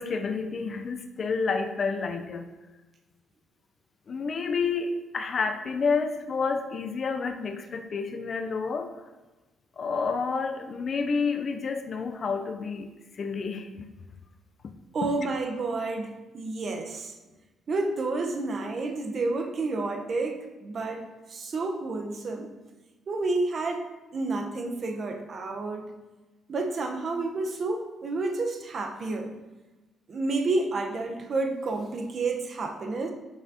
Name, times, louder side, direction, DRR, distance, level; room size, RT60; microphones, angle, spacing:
voice 1, 0.0-2.5 4.1-8.9 9.8-12.9 13.2-13.9, left 4 dB, 50° left, 6 dB, 0.4 m, -29 dB
voice 2, 14.9-17.1 17.7-22.5 23.1-25.9 26.5-29.3 30.1-33.1, right 3 dB, 50° right, 4 dB, 0.8 m, -30 dB
7.0 x 5.8 x 2.7 m, 1.1 s
cardioid pair, 90°, 0 cm